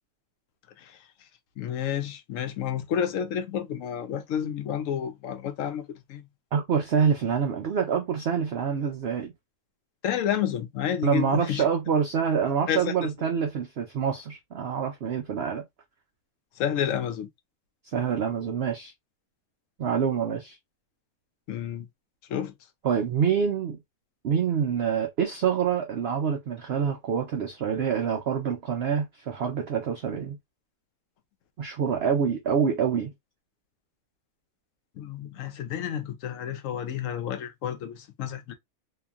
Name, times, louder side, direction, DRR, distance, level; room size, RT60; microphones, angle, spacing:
voice 1, 1.6-6.3 10.0-11.7 12.7-13.1 16.6-17.3 21.5-21.9 22.3-22.5 35.0-38.5, left 9 dB, 70° left, 0.9 m, -30 dB
voice 2, 6.5-9.3 11.0-15.6 17.9-18.9 19.8-20.6 22.8-23.8 24.2-30.4 31.6-33.1, right 7 dB, 65° right, 0.6 m, -26 dB
2.8 x 2.5 x 2.3 m
omnidirectional pair, 1.6 m